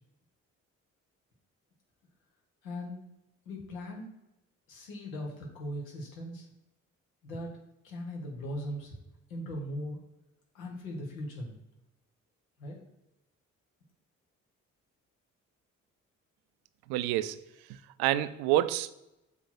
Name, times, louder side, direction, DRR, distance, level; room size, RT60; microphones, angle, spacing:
voice 1, 2.6-3.0 3.4-4.1 4.7-6.5 7.2-7.6 7.8-9.0 9.3-10.0 10.5-11.6 12.6-12.8, equal, 85° left, -1 dB, 1.6 m, -39 dB
voice 2, 16.9-17.4 18.0-18.9, right 14 dB, 70° right, 14 dB, 0.6 m, -27 dB
6.9 x 4.5 x 4.4 m, 0.94 s
hypercardioid pair, 40°, 39 cm